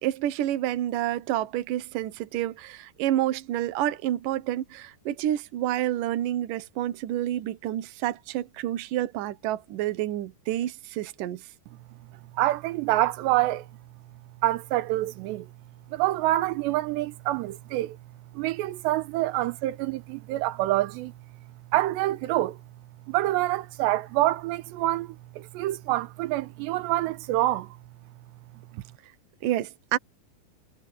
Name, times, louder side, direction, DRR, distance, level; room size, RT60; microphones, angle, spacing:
voice 1, 0.0-11.4 29.4-30.0, right 13 dB, 65° right, 2.4 m, -29 dB
voice 2, 12.3-13.7 14.4-15.5 15.9-18.0 18.3-21.1 21.7-22.6 23.1-27.8 28.7-28.8, right 16 dB, 90° right, 3.0 m, -26 dB
omnidirectional pair, 5.0 m